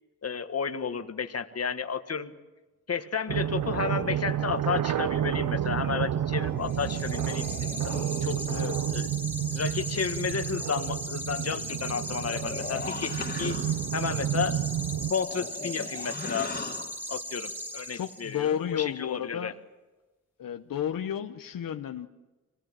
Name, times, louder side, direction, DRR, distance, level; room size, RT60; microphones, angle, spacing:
voice 1, 0.2-2.3 2.9-8.4 8.9-9.0 9.5-13.6 13.9-14.6 15.1-16.7 17.1-19.5, left 6 dB, 50° left, 8 dB, 1.6 m, -32 dB
sound 1, 3.3-15.1, right 10 dB, 75° right, 0.7 m, -30 dB
sound 2, 6.1-8.6 11.7-13.9 14.9-17.0, left 3 dB, 30° left, 1.8 m, -40 dB
sound 3, 6.6-18.5, equal, 5° right, 2.4 m, -38 dB
voice 2, 17.9-19.6 20.4-22.1, left 9 dB, 85° left, 6 dB, 1.0 m, -32 dB
25.0 x 18.5 x 7.6 m, 1.2 s
cardioid pair, 80°, 33 cm